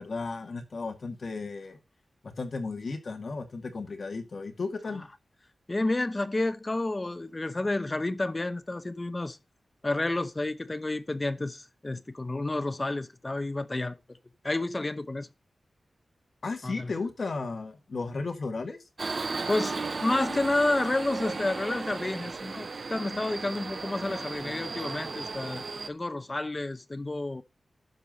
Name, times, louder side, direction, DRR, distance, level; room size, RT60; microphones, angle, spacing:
voice 1, 0.0-1.8 2.2-5.1 16.4-18.8, left 3 dB, 55° left, 2.0 m, -34 dB
voice 2, 5.7-9.4 9.8-14.0 14.4-15.3 16.6-16.9 19.5-27.4, left 2 dB, 25° left, 0.8 m, -30 dB
Subway metro underground, 19.0-25.9, right 4 dB, 50° right, 0.7 m, -35 dB
12.0 x 4.8 x 5.3 m
wide cardioid pair, 140°, 0 cm